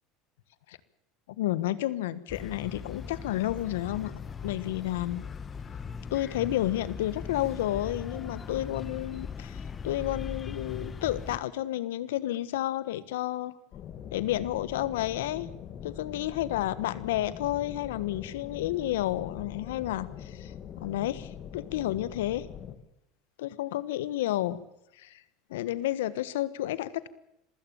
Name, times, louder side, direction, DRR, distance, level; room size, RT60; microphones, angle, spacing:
voice 1, 1.4-4.1 4.4-5.2 6.1-9.6 9.8-13.5 14.1-15.5 15.8-20.5 20.8-22.5 23.4-24.6 25.0-25.2 25.5-27.1, left 14 dB, 85° left, 17 dB, 1.3 m, -31 dB
sound 1, 2.3-11.4, left 6 dB, 30° left, 1.7 m, -39 dB
sound 2, 13.7-22.8, left 9 dB, 50° left, 2.6 m, -43 dB
27.0 x 16.0 x 7.0 m, 0.82 s
hypercardioid pair, 90°, 0 cm